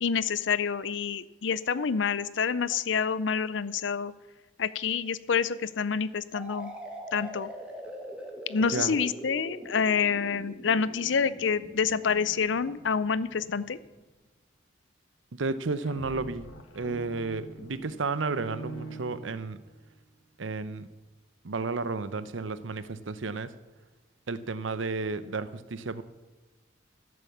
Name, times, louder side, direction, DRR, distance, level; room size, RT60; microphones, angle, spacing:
voice 1, 0.0-4.1 4.6-6.7 7.1-7.5 8.5-13.8, left 6 dB, 70° left, 17 dB, 0.5 m, -27 dB
sound 1, 6.3-14.0, equal, 5° right, 1.6 m, -43 dB
voice 2, 15.3-16.5 16.7-19.6 20.4-20.9 21.4-23.5 24.3-26.0, right 3 dB, 80° right, 13 dB, 0.7 m, -32 dB
sound 2, 15.6-19.8, right 2 dB, 90° left, 1.4 m, -44 dB
13.5 x 7.1 x 7.3 m, 1.2 s
head